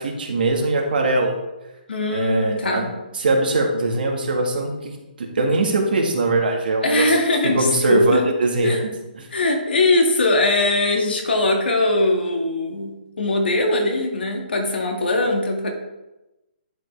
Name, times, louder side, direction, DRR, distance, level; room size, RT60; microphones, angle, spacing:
voice 1, 0.0-1.3 2.1-2.9 3.1-7.1 7.4-8.9 9.1-9.3, right 2 dB, 65° right, 2 dB, 1.7 m, -21 dB
voice 2, 1.9-2.9 6.8-8.2 8.6-8.8 9.3-15.7, left 2 dB, 85° left, 2 dB, 1.9 m, -21 dB
10.5 x 4.9 x 3.4 m, 1.0 s
hypercardioid pair, 160°, 5 cm